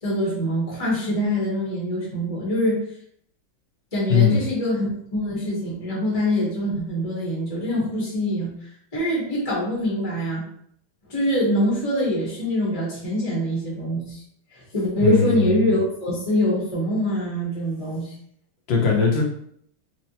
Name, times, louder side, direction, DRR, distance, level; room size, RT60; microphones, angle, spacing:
voice 1, 0.0-2.8 3.9-8.5 8.9-10.4 11.1-14.2 14.5-18.1, equal, 25° left, -6 dB, 0.8 m, -24 dB
voice 2, 15.0-15.7 18.7-19.2, left 6 dB, 70° left, -1 dB, 1.5 m, -20 dB
4.2 x 2.1 x 2.8 m, 0.68 s
omnidirectional pair, 2.2 m